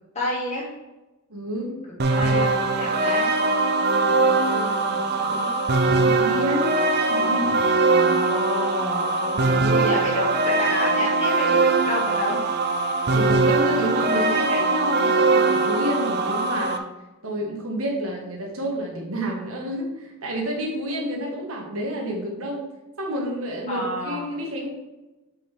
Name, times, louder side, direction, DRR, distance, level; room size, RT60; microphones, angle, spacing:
voice 1, 0.1-0.7 2.1-3.3 7.9-9.2 9.6-11.6 11.8-12.4 23.7-24.2, left 1 dB, 30° left, -5 dB, 2.7 m, -29 dB
voice 2, 1.3-1.8 4.0-5.5 6.0-6.7 7.1-7.6 9.3-10.0 13.0-16.8 17.2-22.7 23.0-24.7, equal, 70° right, -1 dB, 1.9 m, -29 dB
sound 1, 2.0-16.8, right 3 dB, 45° right, 0.7 m, -21 dB
7.9 x 5.3 x 3.6 m, 1.1 s
head